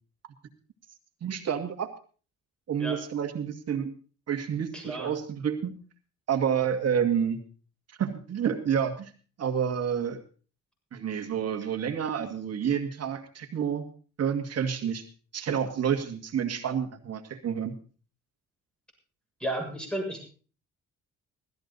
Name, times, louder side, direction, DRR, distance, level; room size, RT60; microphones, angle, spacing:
voice 1, 1.2-1.9 2.7-3.9 4.3-5.7 6.3-7.4 8.0-9.1 9.4-10.2 10.9-13.8 14.2-15.0 15.3-17.7, right 8 dB, 55° right, 7 dB, 2.2 m, -29 dB
voice 2, 4.7-5.2 19.4-20.2, right 1 dB, 5° left, 1 dB, 7.1 m, -33 dB
16.0 x 14.0 x 4.1 m, 0.38 s
cardioid pair, 90°, 30 cm